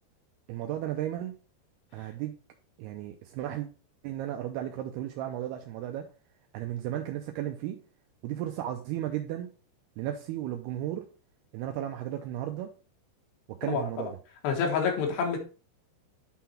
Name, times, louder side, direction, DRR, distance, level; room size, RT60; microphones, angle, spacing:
voice 1, 0.5-1.4 1.9-2.4 2.8-3.7 4.0-6.1 6.5-7.8 8.2-9.5 10.0-11.0 11.5-12.7 13.5-14.1, right 12 dB, 85° right, 2.3 m, -34 dB
voice 2, 14.4-15.4, left 6 dB, 75° left, 3.4 m, -27 dB
9.2 x 3.8 x 4.3 m
omnidirectional pair, 5.2 m